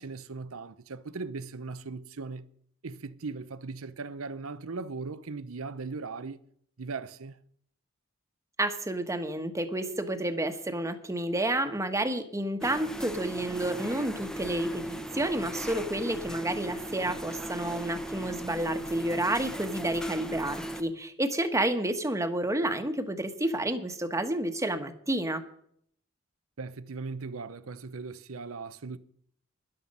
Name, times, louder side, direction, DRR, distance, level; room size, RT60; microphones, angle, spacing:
voice 1, 0.0-2.5 2.8-6.4 6.8-7.4 26.6-29.0, right 4 dB, 85° right, 0.8 m, -38 dB
voice 2, 8.6-25.4, right 1 dB, 15° right, 1.2 m, -30 dB
sound 1, 12.6-20.9, right 1 dB, 5° left, 0.9 m, -37 dB
13.0 x 11.0 x 5.4 m
head